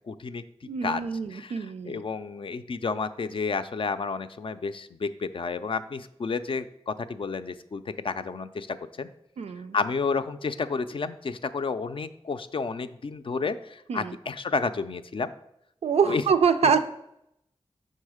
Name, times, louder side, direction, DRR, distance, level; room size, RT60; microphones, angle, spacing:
voice 1, 0.1-0.4 0.8-9.1 9.7-15.3 16.0-16.2, left 4 dB, 55° left, 11 dB, 0.4 m, -31 dB
voice 2, 0.6-2.0 9.4-9.8 13.9-14.2 15.8-16.9, right 6 dB, 85° right, 10 dB, 0.4 m, -25 dB
5.5 x 3.9 x 4.9 m, 0.79 s
cardioid pair, 40°, 10 cm